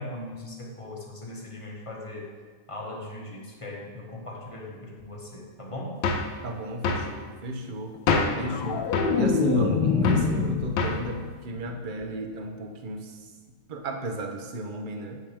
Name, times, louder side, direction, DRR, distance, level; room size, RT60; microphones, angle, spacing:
voice 1, 0.0-2.3 2.7-6.0, left 1 dB, 20° left, -2 dB, 1.1 m, -39 dB
sound 1, 6.0-6.4 6.8-7.1 8.1-8.5 8.9-9.2 10.0-10.3 10.8-11.1, left 4 dB, 90° left, 1.5 m, -25 dB
voice 2, 6.4-13.2 13.7-15.2, right 1 dB, 55° right, 4 dB, 0.5 m, -33 dB
sound 2, 8.2-11.3 11.6-12.0, left 5 dB, 70° left, 1.2 m, -26 dB
8.7 x 8.1 x 3.5 m, 1.5 s
omnidirectional pair, 1.9 m